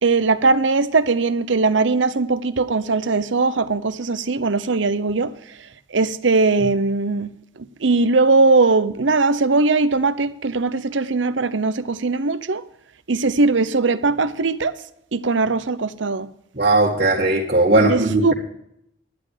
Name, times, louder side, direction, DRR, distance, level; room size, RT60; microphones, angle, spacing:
voice 1, 0.0-5.3 5.9-7.3 7.6-12.6 13.1-14.8 15.1-16.3 17.9-18.3, right 3 dB, 75° right, 0.8 m, -20 dB
voice 2, 16.5-18.3, right 2 dB, 45° right, 2.1 m, -18 dB
11.5 x 11.0 x 5.0 m
head